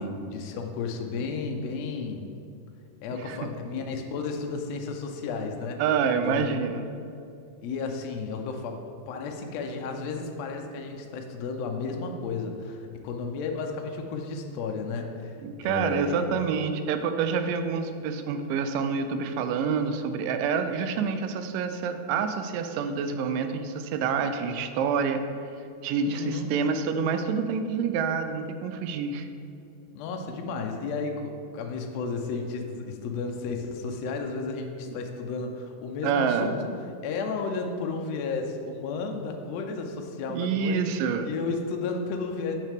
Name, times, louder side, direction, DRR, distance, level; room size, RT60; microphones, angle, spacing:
voice 1, 0.0-2.3 3.0-5.8 6.2-6.5 7.6-8.8 9.1-16.3 25.6-25.7 26.0-26.5 29.9-36.6 37.0-40.9 41.2-42.6, left 4 dB, 75° left, 3 dB, 1.5 m, -33 dB
voice 2, 5.8-6.8 15.4-25.2 25.8-29.3 36.0-36.5 40.3-41.3, right 6 dB, 85° right, 8 dB, 2.2 m, -27 dB
9.2 x 6.5 x 3.5 m, 2.6 s
omnidirectional pair, 3.8 m